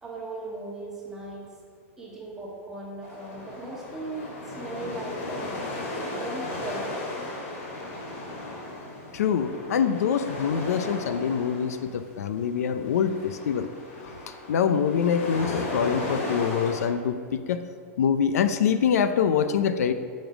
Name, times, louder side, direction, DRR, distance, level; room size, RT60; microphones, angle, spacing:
voice 1, 0.0-1.5 2.0-5.5 6.0-7.0, right 2 dB, 5° right, -4 dB, 1.4 m, -38 dB
sound 1, 3.0-16.9, left 2 dB, 55° left, 2.1 m, -36 dB
voice 2, 9.1-13.7 14.5-17.6 18.0-19.9, left 7 dB, 85° left, 10 dB, 0.6 m, -25 dB
9.0 x 5.3 x 6.1 m, 2.1 s
supercardioid pair, 175°, 8 cm